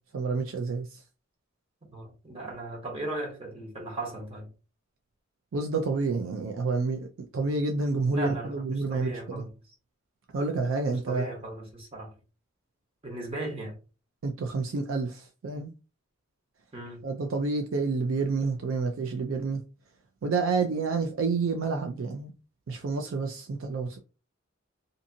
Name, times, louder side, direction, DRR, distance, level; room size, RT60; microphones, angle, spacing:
voice 1, 0.1-1.0 5.5-9.4 10.3-11.3 14.2-15.7 17.0-19.6 20.2-22.3 22.7-24.0, right 4 dB, 85° right, 0.4 m, -29 dB
voice 2, 1.9-4.5 8.1-9.5 10.9-12.1 13.0-13.8 16.7-17.1, right 2 dB, 30° right, 0.9 m, -37 dB
2.6 x 2.6 x 2.6 m
head